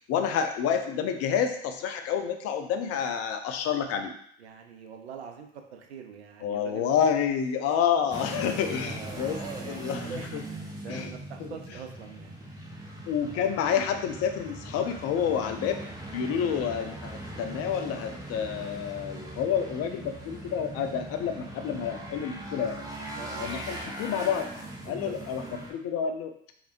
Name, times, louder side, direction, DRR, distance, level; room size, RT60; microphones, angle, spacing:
voice 1, 0.1-4.1 6.4-9.4 9.7-10.4 10.9-11.1 11.4-11.5 13.1-15.8 16.1-22.8 23.4-24.5 24.9-25.4 25.7-26.3, left 8 dB, 50° left, 7 dB, 0.5 m, -29 dB
voice 2, 4.4-6.9 8.3-8.5 8.8-10.3 10.7-12.3 23.2-23.5 24.9-25.2, right 6 dB, 90° right, 4 dB, 0.5 m, -43 dB
sound 1, 8.1-25.7, right 1 dB, 10° right, 0.8 m, -40 dB
3.2 x 2.9 x 2.5 m, 0.66 s
hypercardioid pair, 65°, 32 cm